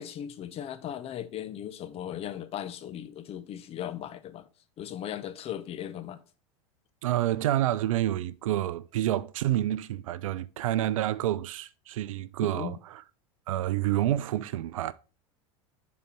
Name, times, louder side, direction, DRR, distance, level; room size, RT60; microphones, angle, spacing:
voice 1, 0.0-4.5 4.8-6.2 12.4-12.8, left 10 dB, 35° left, 0.8 m, -37 dB
voice 2, 7.0-13.0 13.5-14.9, right 13 dB, 80° right, 0.5 m, -28 dB
6.9 x 4.3 x 4.4 m
hypercardioid pair, 100°, 17 cm